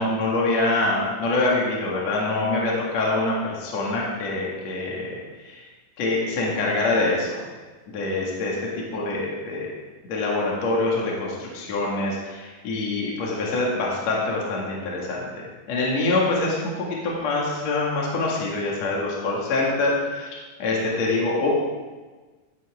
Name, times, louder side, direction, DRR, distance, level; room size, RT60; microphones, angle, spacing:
voice 1, 0.0-5.2 5.4-5.6 6.0-7.4 7.9-9.7 10.1-15.3 15.7-20.3 20.6-21.5, left 2 dB, 50° left, -4 dB, 3.0 m, -25 dB
16.0 x 9.2 x 3.6 m, 1.3 s
omnidirectional pair, 4.5 m